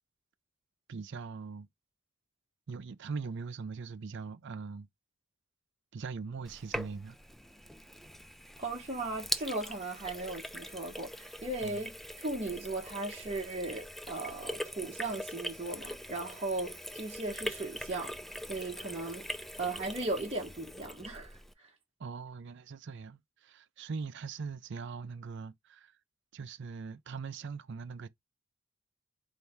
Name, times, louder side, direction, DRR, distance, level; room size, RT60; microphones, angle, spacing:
voice 1, 0.9-1.7 2.7-4.9 5.9-7.2 11.6-11.9 22.0-25.9 26.3-28.1, right 5 dB, 60° right, 0.5 m, -41 dB
Sink (filling or washing), 6.4-21.5, equal, ahead, 0.3 m, -42 dB
voice 2, 8.6-18.2 18.5-19.3 19.6-21.7, right 2 dB, 30° right, 1.0 m, -37 dB
4.4 x 2.7 x 3.4 m
head